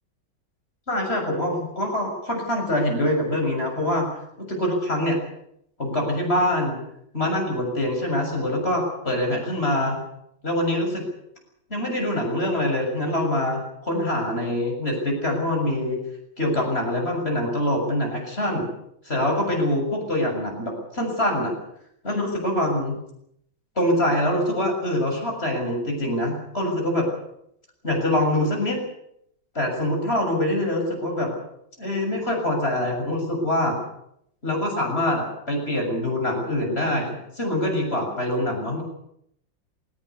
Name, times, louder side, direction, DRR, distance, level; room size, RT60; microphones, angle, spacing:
voice 1, 0.9-4.1 4.5-5.2 5.8-6.8 7.1-10.0 10.4-11.1 11.7-16.0 16.4-18.7 19.0-21.5 22.0-23.0 23.8-27.0 27.8-28.8 29.5-31.3 31.8-33.8 34.4-38.8, left 1 dB, 30° left, 2 dB, 7.3 m, -24 dB
21.0 x 19.0 x 8.4 m, 0.74 s
omnidirectional pair, 2.1 m